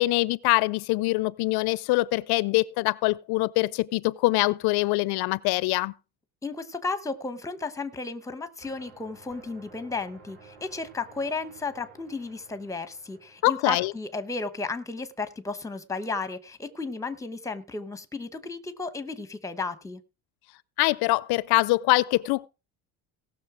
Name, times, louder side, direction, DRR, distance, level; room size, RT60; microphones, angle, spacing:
voice 1, 0.0-5.9 13.4-13.9 20.8-22.5, left 20 dB, 70° left, 0.5 m, -24 dB
voice 2, 6.4-20.0, left 3 dB, 10° left, 0.9 m, -33 dB
sound 1, 8.6-15.3, right 4 dB, 65° right, 7.4 m, -54 dB
17.5 x 6.5 x 4.8 m
cardioid pair, 160°, 39 cm